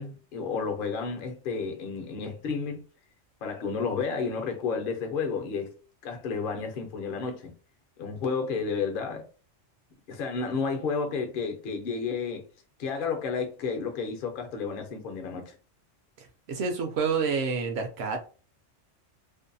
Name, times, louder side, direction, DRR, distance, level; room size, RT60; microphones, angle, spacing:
voice 1, 0.0-2.8 3.4-5.7 6.0-7.5 8.0-9.3 10.1-12.5 12.8-15.6, left 5 dB, 55° left, 0.7 m, -31 dB
voice 2, 16.2-18.2, right 5 dB, 65° right, 0.8 m, -29 dB
2.6 x 2.2 x 2.6 m
omnidirectional pair, 1.3 m